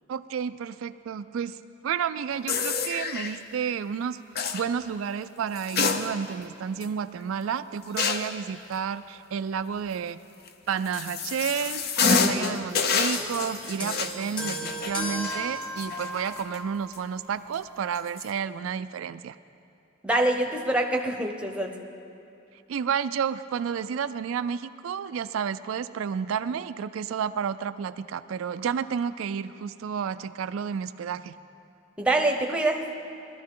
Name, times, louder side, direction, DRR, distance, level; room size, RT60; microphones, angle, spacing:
voice 1, 0.1-4.2 4.5-10.2 10.7-19.4 22.7-31.3, right 7 dB, 90° right, 12 dB, 0.3 m, -31 dB
sound 1, 2.5-3.4 4.3-4.6 5.5-6.4 6.8-6.9 8.0-8.4 10.5-16.6 16.9-17.0 17.9-18.2, left 5 dB, 50° left, 0.6 m, -28 dB
voice 2, 12.2-12.6 20.0-21.7 32.0-32.8, right 2 dB, 5° right, 3 dB, 0.8 m, -25 dB
sound 2, 13.1-16.7 17.6-17.8, equal, 25° left, 1.8 m, -35 dB
19.5 x 12.5 x 3.8 m, 2.7 s
head